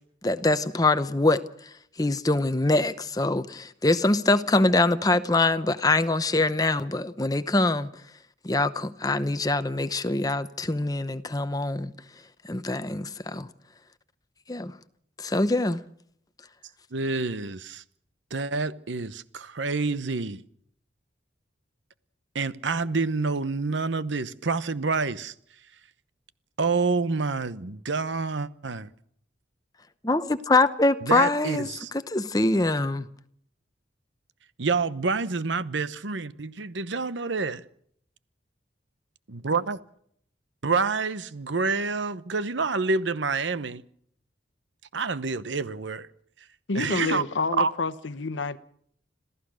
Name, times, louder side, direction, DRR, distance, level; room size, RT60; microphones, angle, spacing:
voice 1, 0.2-7.9 8.4-11.9 12.4-13.5 14.5-14.7 15.2-15.8 30.0-31.7 31.9-33.1, left 2 dB, 20° left, 0.8 m, -24 dB
voice 2, 16.9-17.8 18.3-20.4 22.3-25.3 26.6-28.9 31.0-31.9 34.6-37.6 39.3-39.8 40.6-43.8 44.9-46.1 46.7-47.2 47.5-47.7, right 4 dB, 80° right, 0.9 m, -28 dB
voice 3, 46.7-48.6, left 3 dB, 85° left, 1.0 m, -28 dB
26.5 x 15.5 x 6.3 m
head